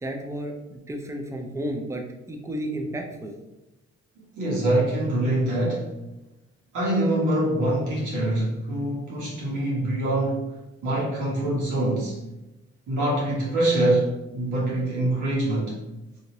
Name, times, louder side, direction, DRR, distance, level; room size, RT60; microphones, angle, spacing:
voice 1, 0.0-3.3, right 1 dB, 10° right, 2 dB, 0.5 m, -32 dB
voice 2, 4.3-5.9 6.7-12.2 12.9-15.8, right 1 dB, 75° right, -5 dB, 1.2 m, -24 dB
2.8 x 2.7 x 2.9 m, 0.99 s
supercardioid pair, 55°, 30 cm